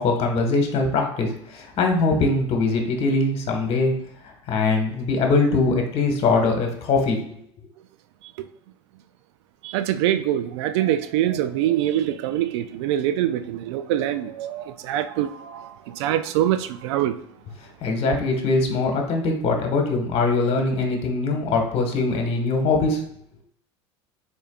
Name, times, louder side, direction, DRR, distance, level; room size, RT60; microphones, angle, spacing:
voice 1, 0.0-3.9 4.2-7.2 17.8-23.0, left 3 dB, 40° left, 1.5 m, -22 dB
voice 2, 9.6-17.2, right 12 dB, 65° right, 0.4 m, -24 dB
4.8 x 4.4 x 2.4 m
hypercardioid pair, 90°, 15 cm